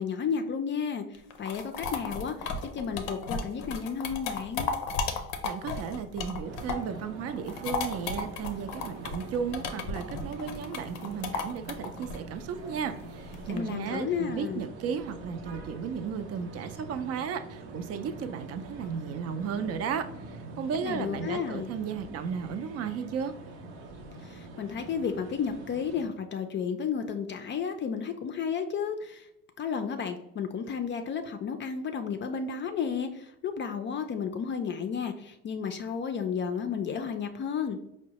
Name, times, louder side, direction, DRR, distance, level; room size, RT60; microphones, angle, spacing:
voice 1, 0.0-4.7 13.5-14.6 20.8-21.7 24.2-29.3 29.6-37.8, left 6 dB, 35° left, 7 dB, 0.4 m, -32 dB
sound 1, 1.1-7.0 7.3-13.6, left 4 dB, 85° left, 0.5 m, -34 dB
voice 2, 5.4-23.3, right 6 dB, 50° right, 9 dB, 0.4 m, -34 dB
sound 2, 6.4-26.1, right 3 dB, 90° right, 0.7 m, -44 dB
4.4 x 2.1 x 2.9 m, 0.82 s
supercardioid pair, 75°, 32 cm